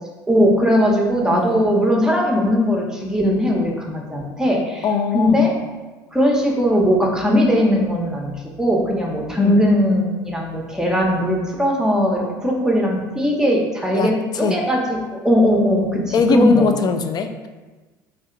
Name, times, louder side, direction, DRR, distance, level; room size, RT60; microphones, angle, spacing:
voice 1, 0.3-4.8 5.1-5.5 6.1-8.3 8.6-16.7, equal, 5° right, -1 dB, 1.0 m, -19 dB
voice 2, 1.3-1.6 4.8-5.5 9.4-9.6 13.9-14.6 16.1-17.5, left 4 dB, 40° left, 7 dB, 0.4 m, -21 dB
3.3 x 2.7 x 3.8 m, 1.2 s
hypercardioid pair, 65°, 10 cm